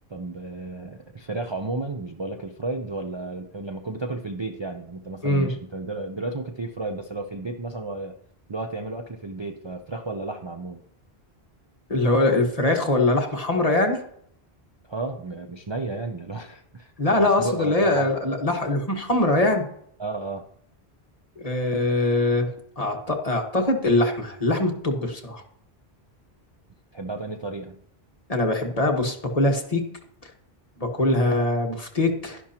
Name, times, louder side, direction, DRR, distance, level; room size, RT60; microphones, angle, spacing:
voice 1, 0.1-8.1 8.5-10.8 14.9-16.9 17.2-18.1 20.0-20.4 26.9-27.8, right 2 dB, 30° right, 3 dB, 0.6 m, -33 dB
voice 2, 11.9-14.0 17.0-19.7 21.4-22.5 22.8-25.4 28.3-29.8 30.8-32.4, left 2 dB, 35° left, 1 dB, 1.5 m, -22 dB
12.0 x 10.5 x 2.9 m, 0.68 s
omnidirectional pair, 1.1 m